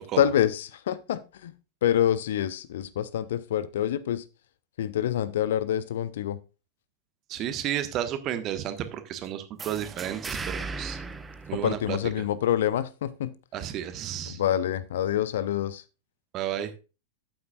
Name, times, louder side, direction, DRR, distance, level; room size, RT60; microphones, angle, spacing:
voice 1, 0.2-1.5 1.8-4.2 4.8-6.4 11.5-13.3 14.4-15.8, left 10 dB, 60° left, 0.6 m, -26 dB
voice 2, 7.3-11.0 11.5-12.2 13.5-14.4 16.3-16.7, right 11 dB, 35° right, 1.3 m, -32 dB
sound 1, 9.6-12.3, right 4 dB, 15° right, 0.9 m, -37 dB
12.0 x 8.6 x 2.4 m
figure-of-eight pair, 90°, 0 cm